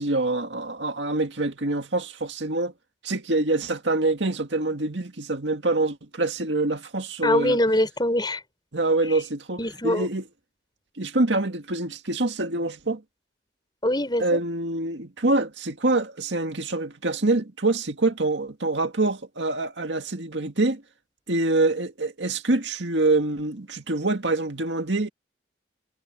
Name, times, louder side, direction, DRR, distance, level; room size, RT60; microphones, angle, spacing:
voice 1, 0.0-2.7 3.0-7.6 8.7-10.2 11.0-13.0 14.2-20.8 21.3-25.1, right 2 dB, 80° right, 2.0 m, -25 dB
voice 2, 7.2-8.4 9.6-10.1 13.8-14.4, left 1 dB, 25° left, 6.1 m, -23 dB
head